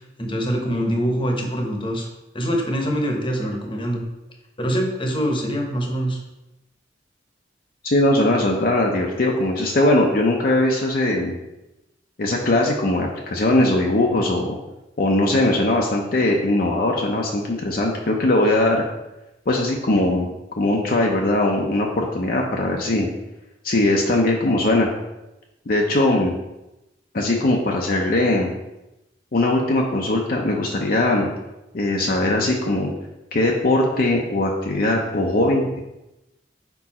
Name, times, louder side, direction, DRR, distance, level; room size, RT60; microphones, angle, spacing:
voice 1, 0.2-2.1 2.3-4.0 4.6-6.2, equal, 30° left, 1 dB, 0.9 m, -24 dB
voice 2, 7.8-11.4 12.2-14.6 15.0-18.8 19.5-20.3 20.6-23.1 23.6-24.9 25.7-26.4 27.1-28.5 29.3-31.3 31.7-32.9 33.3-35.8, left 1 dB, 55° left, 0 dB, 0.6 m, -20 dB
5.2 x 4.5 x 4.2 m, 0.96 s
head